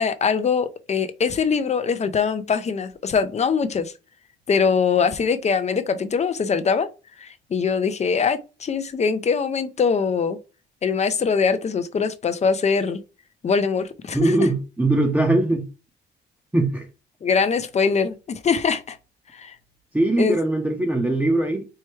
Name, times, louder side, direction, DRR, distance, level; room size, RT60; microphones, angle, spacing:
voice 1, 0.0-3.9 4.5-6.9 7.2-10.4 10.8-13.0 13.4-14.5 17.2-19.0 19.3-19.5 20.2-20.4, left 5 dB, 35° left, 0.5 m, -22 dB
voice 2, 14.1-15.7 16.5-16.9 19.9-21.7, right 2 dB, 10° right, 0.7 m, -21 dB
4.5 x 2.2 x 3.1 m
cardioid pair, 90°, 20 cm